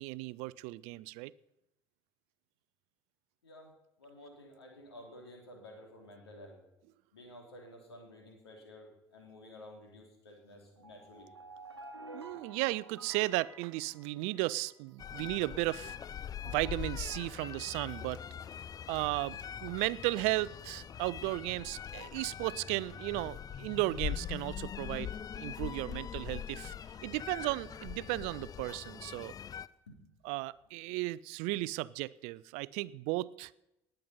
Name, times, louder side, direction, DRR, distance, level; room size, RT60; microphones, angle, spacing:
voice 1, 0.0-1.3 12.1-16.0 16.4-18.2 18.9-26.7 27.0-29.3 30.2-33.5, right 20 dB, 55° right, 21 dB, 0.5 m, -35 dB
voice 2, 4.0-6.6 7.1-11.3 29.9-30.0, left 1 dB, 80° left, 1 dB, 3.1 m, -52 dB
sound 1, 10.8-14.7, right 2 dB, 85° right, 0.9 m, -51 dB
sound 2, 15.0-29.7, left 8 dB, 30° left, 0.5 m, -42 dB
19.5 x 7.9 x 5.5 m, 0.87 s
figure-of-eight pair, 60°, 13 cm